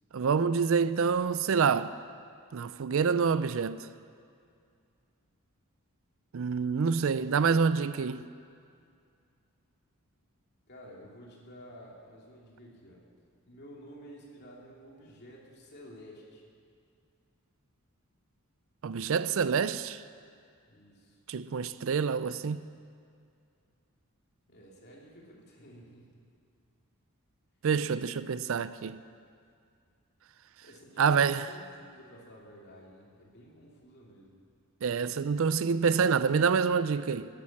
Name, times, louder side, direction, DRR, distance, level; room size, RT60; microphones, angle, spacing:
voice 1, 0.1-2.0 2.5-3.9 6.3-8.2 18.8-20.0 21.3-22.6 27.6-29.0 31.0-31.4 34.8-37.3, right 6 dB, 60° right, 0.4 m, -27 dB
voice 2, 10.7-13.0 13.4-16.4 20.7-21.2 24.4-26.2 30.6-34.3, equal, 45° left, 2.9 m, -51 dB
15.5 x 10.5 x 7.3 m
head